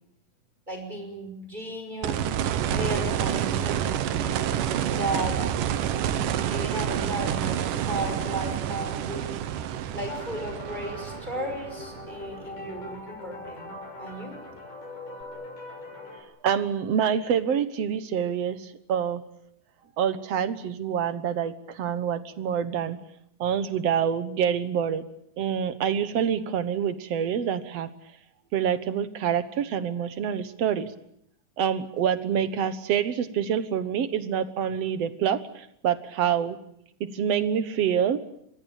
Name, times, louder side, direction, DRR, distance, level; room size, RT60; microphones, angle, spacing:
voice 1, 0.7-2.4 2.7-3.9 4.9-5.4 6.1-9.6 9.9-13.7 14.0-14.3, right 1 dB, 15° right, 4 dB, 5.6 m, -35 dB
sound 1, 2.0-12.9 15.2-15.3, right 10 dB, 90° right, 2.9 m, -28 dB
sound 2, 10.1-16.2, left 2 dB, 75° left, 8.7 m, -41 dB
voice 2, 16.4-19.2 20.0-23.0 23.4-25.0 25.4-27.9 28.5-30.9 31.6-36.6 37.0-38.2, right 8 dB, 60° right, 13 dB, 2.1 m, -26 dB
26.0 x 21.0 x 9.0 m, 0.72 s
omnidirectional pair, 3.7 m